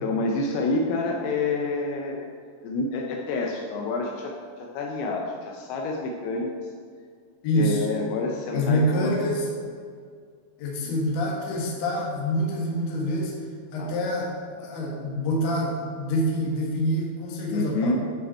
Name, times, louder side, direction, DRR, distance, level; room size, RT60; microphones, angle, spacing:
voice 1, 0.0-2.3 2.6-6.7 7.5-9.2 10.9-11.0 13.8-13.9 17.5-17.9, left 3 dB, 80° left, 1 dB, 2.5 m, -28 dB
voice 2, 7.4-7.8 8.5-9.5 10.6-13.3 13.7-14.3 14.6-17.9, equal, 60° left, -2 dB, 1.9 m, -26 dB
9.6 x 5.5 x 4.4 m, 2.1 s
omnidirectional pair, 4.9 m